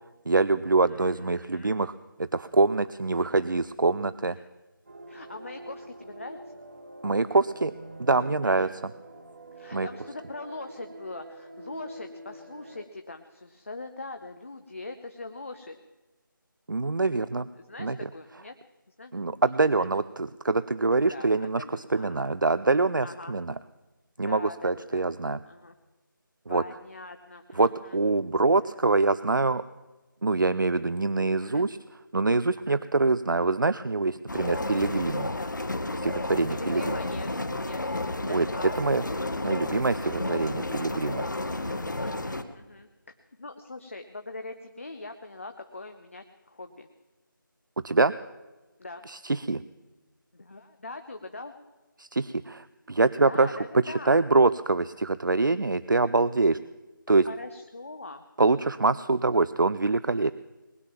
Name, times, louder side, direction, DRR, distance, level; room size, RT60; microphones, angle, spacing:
voice 1, 0.3-1.9 2.2-4.4 7.0-7.7 8.0-8.9 9.7-9.9 16.7-17.5 17.8-18.1 19.1-23.5 24.2-25.4 26.5-26.6 27.6-29.6 30.2-31.8 32.1-35.3 36.0-37.0 38.3-38.5 38.8-39.0 39.4-41.3 47.8-48.1 49.1-49.6 52.0-56.6 57.1-57.3 58.4-60.3, right 3 dB, 65° right, 15 dB, 0.4 m, -25 dB
voice 2, 0.8-1.7 3.2-3.5 4.3-4.5 5.1-6.4 8.4-8.7 9.5-15.8 17.5-18.5 19.0-19.1 19.8-19.9 21.1-22.2 23.0-23.4 24.3-25.0 25.5-25.7 26.5-28.0 31.4-31.6 32.5-32.8 35.3-35.5 36.5-37.3 37.6-39.0 42.0-42.9 43.4-46.9 48.8-49.0 50.3-51.5 53.2-54.2 57.1-58.2, left 2 dB, 40° left, 7 dB, 0.7 m, -42 dB
sound 1, 4.9-12.9, right 2 dB, 35° right, 0.9 m, -46 dB
sound 2, 34.3-42.4, left 2 dB, 60° left, 1.1 m, -32 dB
20.0 x 9.1 x 7.2 m, 1.1 s
figure-of-eight pair, 165°, 11 cm